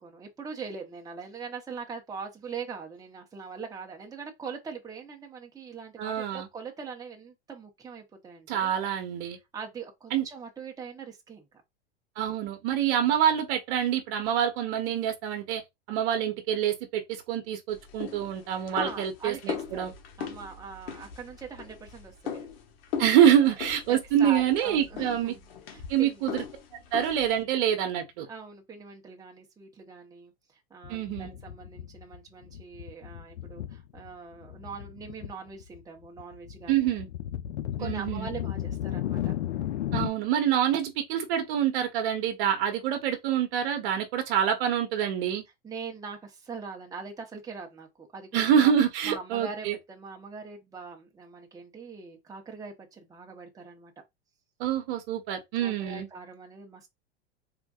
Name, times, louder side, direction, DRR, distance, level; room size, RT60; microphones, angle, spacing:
voice 1, 0.0-8.7 9.5-11.4 18.7-22.5 23.1-23.5 23.9-25.4 25.7-26.2 28.2-30.3 30.7-36.9 37.8-39.3 45.6-48.7 49.0-53.9 55.5-56.9, right 5 dB, 10° right, 0.8 m, -42 dB
voice 2, 6.0-6.5 8.5-9.4 10.1-10.2 12.2-15.6 15.9-17.0 17.3-19.9 23.0-25.3 25.9-26.4 26.9-28.3 30.9-31.3 36.7-37.1 37.8-38.3 39.9-45.4 48.3-49.7 54.6-56.1, right 9 dB, 60° right, 0.9 m, -26 dB
sound 1, 17.7-27.4, left 7 dB, 65° left, 1.0 m, -40 dB
sound 2, 30.8-32.2 32.4-34.1 34.4-35.3 35.6-40.1, left 12 dB, 90° left, 0.6 m, -34 dB
3.7 x 2.5 x 2.3 m
hypercardioid pair, 110°, 33 cm